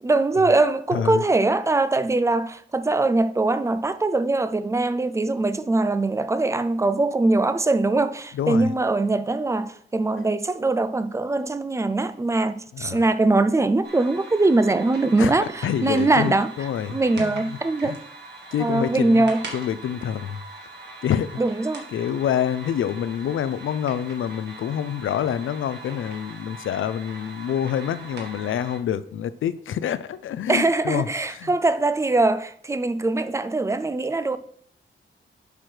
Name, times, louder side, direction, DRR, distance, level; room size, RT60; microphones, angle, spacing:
voice 1, 0.0-16.5 16.9-18.0 18.6-19.4 21.4-21.9 30.5-34.4, right 2 dB, 15° right, 0.3 m, -22 dB
voice 2, 0.9-1.2 8.3-8.7 12.7-13.0 15.2-18.0 18.5-20.4 21.0-21.4 21.9-31.5, left 9 dB, 80° left, 0.5 m, -27 dB
sound 1, 13.8-28.8, right 2 dB, 55° right, 1.7 m, -41 dB
10.5 x 6.1 x 3.3 m
wide cardioid pair, 175°, 20 cm